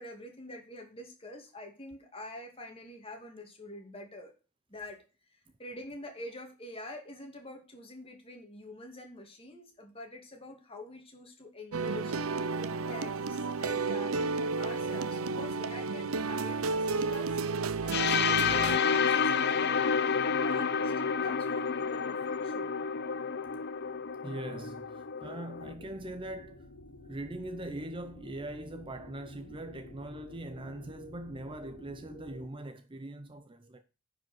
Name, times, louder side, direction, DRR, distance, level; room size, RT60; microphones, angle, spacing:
voice 1, 0.0-4.3 4.7-5.0 5.3-12.2 12.6-17.4 17.8-22.7, left 1 dB, 25° left, 2.4 m, -46 dB
sound 1, 11.7-18.8, right 4 dB, 70° right, 0.6 m, -32 dB
sound 2, 17.9-25.7, left 6 dB, 50° left, 0.6 m, -29 dB
voice 2, 24.2-33.8, right 1 dB, 25° right, 0.6 m, -41 dB
sound 3, 25.6-32.5, left 1 dB, 70° left, 1.1 m, -51 dB
10.0 x 5.0 x 6.3 m
head